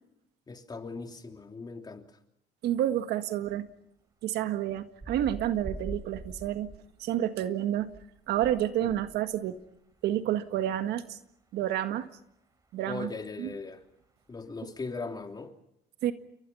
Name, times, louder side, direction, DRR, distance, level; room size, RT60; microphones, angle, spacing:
voice 1, 0.5-2.2 8.9-9.0 12.9-13.8 14.3-15.5, left 4 dB, 25° left, 3.1 m, -39 dB
voice 2, 2.6-3.7 4.2-6.7 7.0-7.9 8.3-9.6 10.0-11.2 11.5-12.1 12.7-13.1 13.4-13.5 16.0-16.1, right 11 dB, 80° right, 1.8 m, -29 dB
sound 1, 3.5-3.6 4.7-7.2 7.7-9.7 9.9-10.0, right 2 dB, 20° right, 4.9 m, -43 dB
29.5 x 24.0 x 5.6 m
cardioid pair, 110°, 17 cm